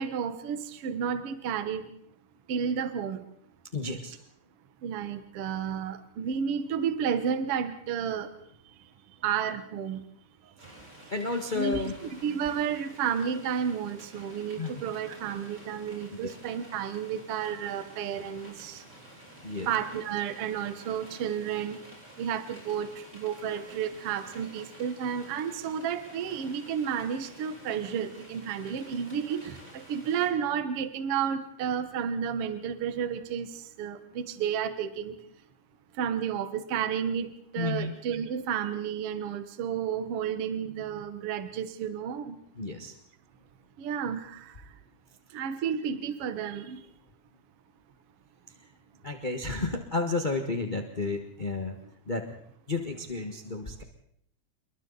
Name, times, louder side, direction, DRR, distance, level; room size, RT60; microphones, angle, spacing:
voice 1, 0.0-1.9 2.5-3.2 4.8-8.3 9.2-10.0 11.6-11.8 12.1-18.8 19.7-21.8 22.2-33.5 33.8-35.2 36.0-42.4 43.8-44.5 45.3-46.8, right 8 dB, 55° right, 10 dB, 2.0 m, -31 dB
voice 2, 3.7-4.2 11.1-11.9 14.6-14.7 19.4-19.7 37.6-37.9 42.6-42.9 49.0-51.8 52.1-52.2 52.7-53.8, left 3 dB, 30° left, 4 dB, 0.8 m, -31 dB
sound 1, 10.6-30.3, equal, 20° right, 8.1 m, -51 dB
28.0 x 23.0 x 4.1 m, 0.66 s
omnidirectional pair, 3.5 m